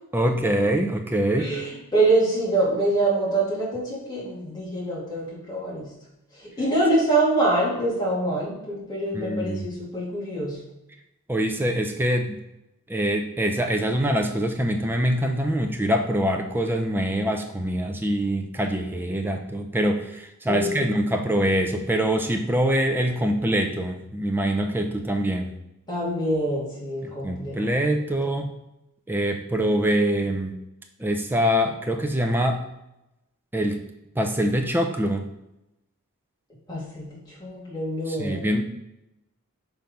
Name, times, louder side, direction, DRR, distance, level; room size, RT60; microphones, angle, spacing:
voice 1, 0.1-1.5 9.1-9.7 11.3-12.4 12.9-25.5 27.0-28.5 29.1-30.6 31.0-32.6 33.5-33.8 34.2-35.3 38.1-38.6, equal, 10° right, 4 dB, 0.5 m, -24 dB
voice 2, 1.4-5.9 6.6-10.6 20.5-21.0 25.9-27.7 36.7-38.5, right 2 dB, 20° left, -6 dB, 2.3 m, -25 dB
5.9 x 3.6 x 5.2 m, 0.90 s
head